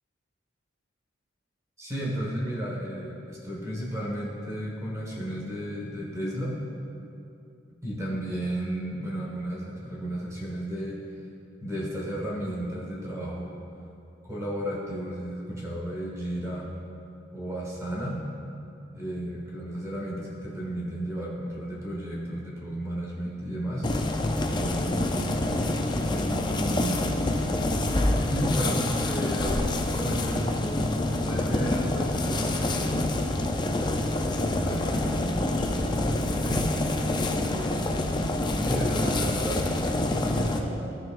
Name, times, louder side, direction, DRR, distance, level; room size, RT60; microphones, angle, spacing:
voice 1, 1.8-6.5 7.8-11.0 11.6-13.5 14.3-16.7 17.3-18.2 18.9-23.9 24.5-27.2 28.3-28.8 29.1-33.1 34.6-36.7 37.4-41.0, equal, 15° right, -4 dB, 1.4 m, -33 dB
sound 1, 23.8-40.6, left 2 dB, 25° left, 0.5 m, -27 dB
13.5 x 6.2 x 2.5 m, 2.7 s
head